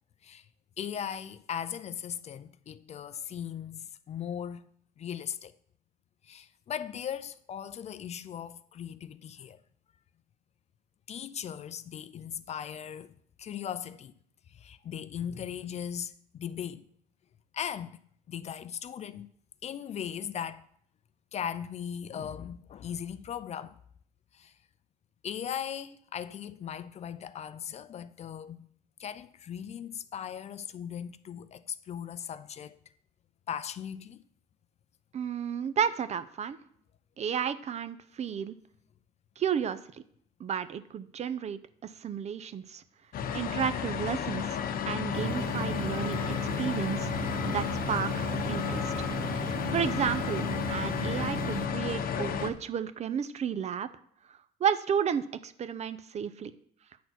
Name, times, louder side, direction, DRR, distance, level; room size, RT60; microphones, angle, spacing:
voice 1, 0.8-4.7 5.0-5.5 6.2-9.6 11.1-14.1 14.5-16.9 17.5-18.0 18.3-19.3 19.6-20.6 21.3-23.8 24.3-24.5 25.2-28.7 29.0-32.8 33.5-34.2, left 8 dB, 40° left, 0.4 m, -38 dB
voice 2, 35.1-36.6 37.2-38.5 39.4-39.8 40.4-42.8 43.3-44.6 44.9-47.1 47.5-49.4 49.7-53.9 54.6-56.5, right 8 dB, 40° right, 0.6 m, -32 dB
sound 1, 43.1-52.5, left 8 dB, 60° left, 0.8 m, -32 dB
sound 2, 45.1-51.7, right 6 dB, 65° right, 0.9 m, -38 dB
9.3 x 4.3 x 5.9 m
cardioid pair, 110°, 17 cm